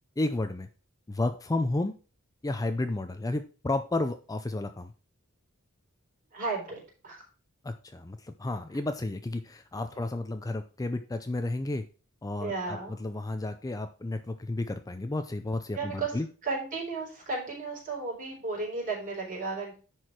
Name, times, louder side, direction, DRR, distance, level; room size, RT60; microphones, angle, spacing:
voice 1, 0.2-0.7 1.1-1.9 2.4-4.9 7.6-11.8 12.2-16.3, left 2 dB, 15° left, 8 dB, 0.5 m, -32 dB
voice 2, 6.3-7.2 12.4-13.0 15.7-19.8, right 3 dB, 40° right, -2 dB, 4.1 m, -34 dB
10.0 x 4.6 x 4.7 m, 0.36 s
head